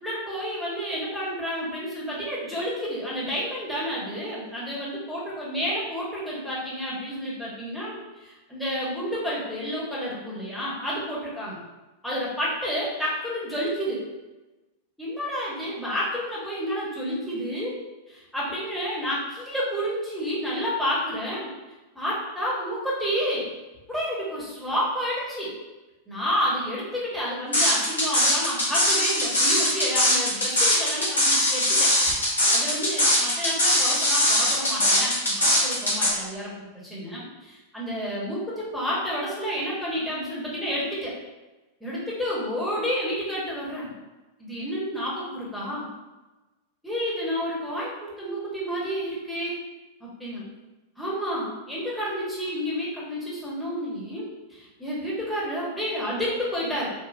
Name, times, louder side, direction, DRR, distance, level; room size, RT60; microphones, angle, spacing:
voice 1, 0.0-11.6 12.0-14.1 15.0-17.8 18.1-21.5 21.9-23.5 23.9-25.5 26.1-31.9 32.5-36.5 36.8-41.1 41.8-43.9 44.4-45.9 46.8-49.6 50.0-50.5 51.0-56.9, equal, ahead, -8 dB, 1.2 m, -30 dB
sound 1, 27.5-36.1, left 1 dB, 75° left, 1.0 m, -21 dB
3.7 x 2.4 x 2.7 m, 1.1 s
figure-of-eight pair, 90°, 0 cm